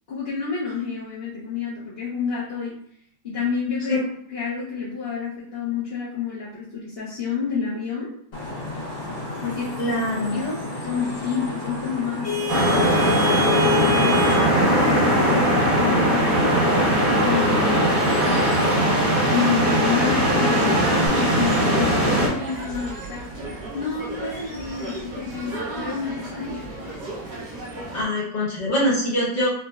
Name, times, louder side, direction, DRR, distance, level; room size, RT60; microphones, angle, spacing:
voice 1, 0.1-2.7 3.2-4.0 4.3-8.1 9.4-9.8 10.2-14.2 14.6-16.5 17.2-18.4 19.3-23.3 23.7-26.7, left 6 dB, 55° left, -10 dB, 0.7 m, -29 dB
Vehicle horn car horn honking / Traffic noise roadway noise, 8.3-21.1, left 2 dB, 85° left, 1.6 m, -29 dB
voice 2, 9.8-10.4 27.9-29.5, left 1 dB, 30° left, -6 dB, 1.0 m, -23 dB
sound 1, 12.5-22.3, right 1 dB, 50° right, 1.6 m, -20 dB
sound 2, 20.2-28.0, right 2 dB, 70° right, 1.3 m, -34 dB
4.0 x 2.0 x 2.3 m, 0.66 s
omnidirectional pair, 2.1 m